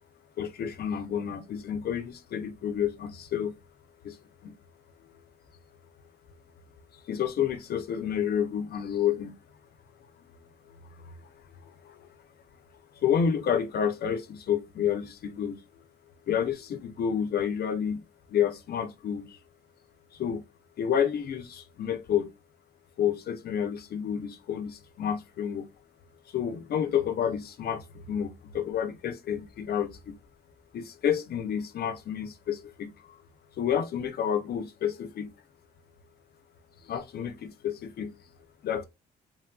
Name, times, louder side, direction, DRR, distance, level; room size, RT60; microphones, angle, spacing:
voice 1, 0.4-3.5 4.0-4.2 4.4-4.5 7.1-9.3 11.0-11.1 11.6-12.1 13.0-15.6 16.3-18.0 18.3-19.4 20.2-20.4 20.8-22.3 23.0-25.7 26.3-30.2 30.7-33.2 33.6-35.3 36.8-38.1 38.6-38.8, left 8 dB, 55° left, 0.4 m, -30 dB
3.0 x 2.3 x 2.3 m
cardioid pair, 90°, 20 cm